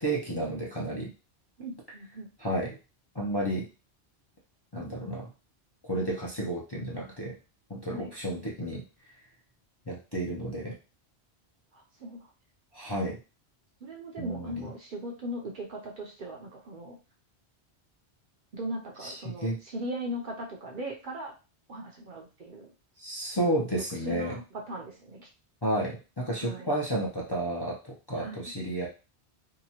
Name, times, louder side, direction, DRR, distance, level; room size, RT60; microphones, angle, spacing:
voice 1, 0.0-1.1 2.4-2.8 3.1-3.7 4.7-5.3 5.8-7.4 7.7-8.8 9.9-10.7 12.7-13.2 14.2-14.7 19.0-19.6 23.0-24.4 25.6-28.9, right 1 dB, 30° left, -5 dB, 0.5 m, -31 dB
voice 2, 1.6-2.3 7.9-8.1 11.7-12.2 13.8-17.0 18.5-21.3 21.7-22.7 24.1-24.4 24.7-25.3 26.4-26.7 28.2-28.5, right 1 dB, 55° right, 0 dB, 0.7 m, -38 dB
2.8 x 2.2 x 2.8 m, 0.32 s
omnidirectional pair, 1.1 m